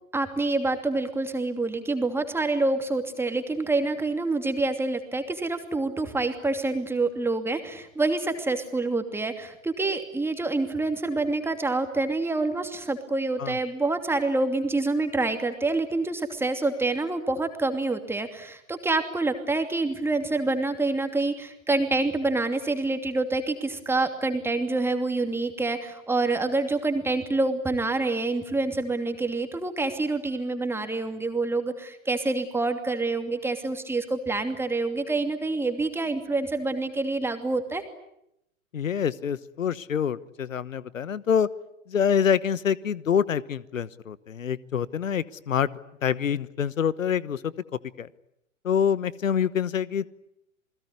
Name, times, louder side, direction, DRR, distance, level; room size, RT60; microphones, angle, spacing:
voice 1, 0.1-37.8, right 3 dB, 5° right, 7 dB, 2.8 m, -27 dB
voice 2, 38.7-41.5 41.9-45.7 46.0-47.5 48.0-48.1 48.6-50.0, left 8 dB, 70° left, 19 dB, 1.2 m, -26 dB
28.5 x 21.0 x 9.7 m, 0.81 s
figure-of-eight pair, 110°, 41 cm